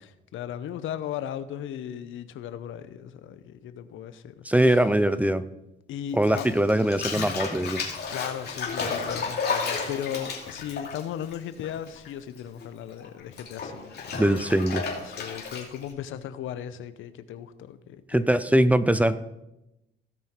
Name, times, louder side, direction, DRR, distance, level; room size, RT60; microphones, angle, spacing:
voice 1, 0.0-4.8 5.9-6.5 8.1-14.2 15.0-18.3, left 10 dB, 80° left, 0.7 m, -37 dB
voice 2, 4.4-5.4 6.1-7.8 14.1-14.8 18.1-19.2, right 1 dB, 5° right, 0.5 m, -22 dB
Bathtub (filling or washing), 6.2-12.1 12.3-15.9, left 5 dB, 55° left, 2.7 m, -33 dB
16.0 x 5.6 x 4.5 m
cardioid pair, 90°, 20 cm